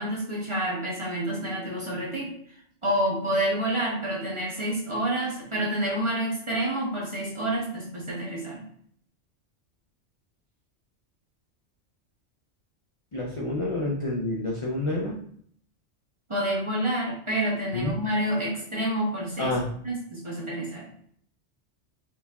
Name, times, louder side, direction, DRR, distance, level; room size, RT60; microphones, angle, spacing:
voice 1, 0.0-2.3 2.8-8.6 16.3-19.6 19.8-20.9, right 1 dB, 25° right, -6 dB, 1.4 m, -28 dB
voice 2, 13.1-15.2 17.7-18.0 19.4-19.7, left 2 dB, 40° left, -2 dB, 0.4 m, -28 dB
4.4 x 3.9 x 2.3 m, 0.63 s
omnidirectional pair, 1.2 m